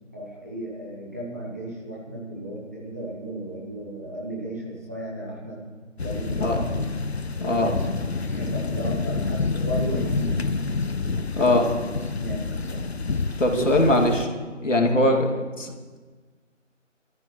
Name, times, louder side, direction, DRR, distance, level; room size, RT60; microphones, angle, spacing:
voice 1, 0.1-5.6 6.0-6.9 7.4-7.9 8.2-10.4 11.4-11.9 12.1-12.9 13.5-14.3 14.7-15.4, right 1 dB, 10° right, -6 dB, 1.1 m, -34 dB
sound 1, 6.0-14.3, left 4 dB, 55° left, 0.8 m, -28 dB
voice 2, 7.4-7.7 11.3-11.6 13.4-14.2 14.6-15.3 15.6-16.0, left 1 dB, 70° left, 2 dB, 2.6 m, -21 dB
21.5 x 13.5 x 3.2 m, 1.4 s
figure-of-eight pair, 165°, 38 cm